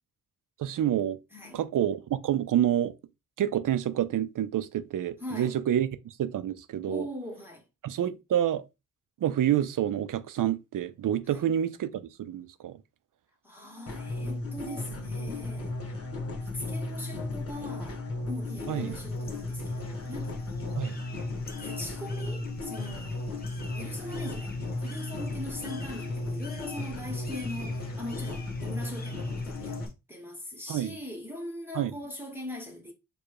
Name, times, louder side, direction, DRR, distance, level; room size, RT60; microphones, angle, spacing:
voice 1, 0.6-1.2 1.5-2.9 3.4-7.1 7.8-8.6 9.2-12.8 18.7-19.0 20.7-20.9 30.7-31.0 31.7-31.9, right 11 dB, 70° right, 0.6 m, -28 dB
voice 2, 1.3-1.6 5.2-5.5 6.9-7.6 11.3-11.4 13.4-15.9 16.4-20.9 21.6-29.8 30.1-32.9, left 1 dB, 5° right, 1.2 m, -41 dB
sound 1, 13.9-29.9, left 2 dB, 45° left, 1.3 m, -35 dB
sound 2, 18.5-29.9, left 3 dB, 30° left, 0.9 m, -49 dB
4.7 x 2.4 x 4.7 m
cardioid pair, 100°, 33 cm